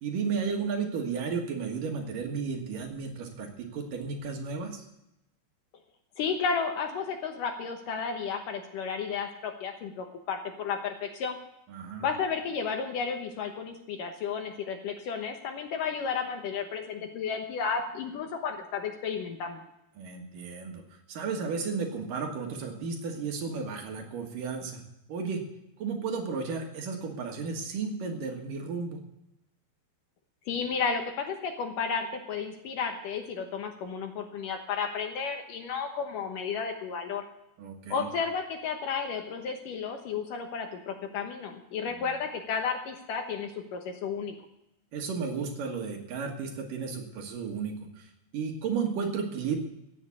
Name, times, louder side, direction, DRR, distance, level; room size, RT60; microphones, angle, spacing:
voice 1, 0.0-4.8 11.7-12.1 20.0-20.8 21.1-24.8 25.1-25.4 25.8-29.0 37.6-38.1 44.9-49.6, right 5 dB, 60° right, 3 dB, 3.0 m, -33 dB
voice 2, 6.2-11.4 12.0-19.6 30.5-37.2 37.9-44.4, left 6 dB, 65° left, 5 dB, 2.4 m, -33 dB
16.5 x 7.5 x 8.4 m, 0.86 s
omnidirectional pair, 4.5 m